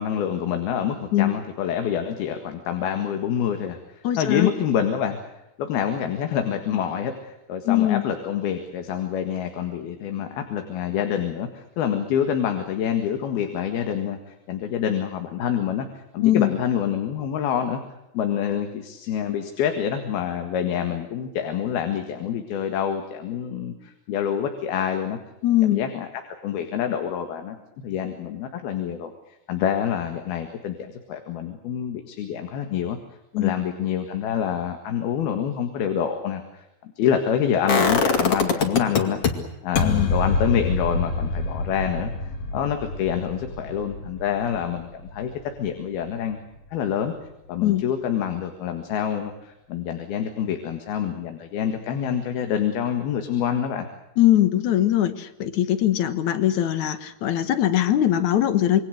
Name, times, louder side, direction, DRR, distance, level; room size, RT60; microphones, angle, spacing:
voice 1, 0.0-5.2 5.6-17.8 18.1-25.2 25.7-26.1 26.4-29.1 29.5-33.0 33.3-39.2 39.6-42.1 42.5-45.3 45.6-46.4 46.7-47.1 47.5-53.9, left 8 dB, 85° left, 6 dB, 3.7 m, -27 dB
voice 2, 4.0-4.5 7.7-8.0 16.2-16.5 25.4-25.9 33.3-33.5 39.8-40.1 47.6-47.8 54.2-58.8, left 12 dB, 60° left, 11 dB, 2.5 m, -21 dB
sound 1, 37.7-39.3 39.8-45.6 45.9-46.0, left 4 dB, 45° left, 3.0 m, -25 dB
27.0 x 22.5 x 6.6 m, 0.90 s
omnidirectional pair, 4.3 m